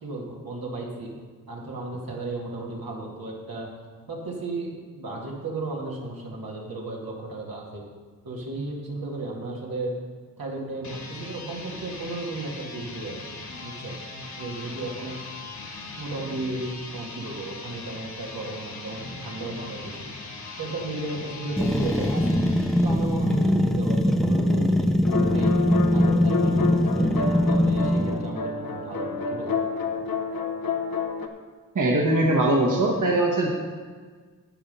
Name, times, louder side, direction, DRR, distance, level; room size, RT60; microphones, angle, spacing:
voice 1, 0.0-1.1 1.5-3.7 4.1-7.8 8.2-9.9 10.4-13.9 14.4-15.2 16.0-20.0 20.6-22.4 22.8-25.6 25.9-29.5, right 2 dB, 90° right, -3 dB, 2.4 m, -34 dB
sound 1, 10.7-23.5, left 3 dB, 55° left, 1.5 m, -40 dB
sound 2, 21.6-28.3, left 1 dB, ahead, 0.6 m, -22 dB
sound 3, 25.0-31.3, left 5 dB, 85° left, 1.0 m, -29 dB
voice 2, 31.7-33.5, right 1 dB, 60° right, -1 dB, 1.4 m, -21 dB
9.9 x 8.6 x 5.5 m, 1.5 s
wide cardioid pair, 80°, 34 cm